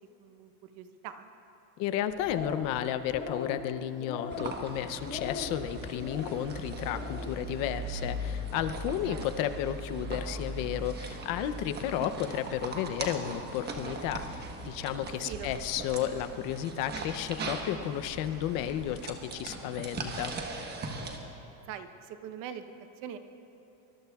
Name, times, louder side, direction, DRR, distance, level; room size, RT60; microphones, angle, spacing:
voice 1, 0.2-1.3 9.1-9.5 15.2-15.6 21.7-23.2, right 9 dB, 50° right, 9 dB, 0.9 m, -43 dB
voice 2, 1.8-20.4, left 11 dB, 45° left, 10 dB, 0.7 m, -33 dB
sound 1, 2.1-2.8 3.0-3.6 4.0-4.6 5.0-5.5 5.9-6.4 6.8-7.3, left 4 dB, 25° left, 1.2 m, -39 dB
sound 2, 4.3-21.2, right 2 dB, 20° right, 1.2 m, -39 dB
24.5 x 20.5 x 2.4 m, 2.9 s
cardioid pair, 155°, 46 cm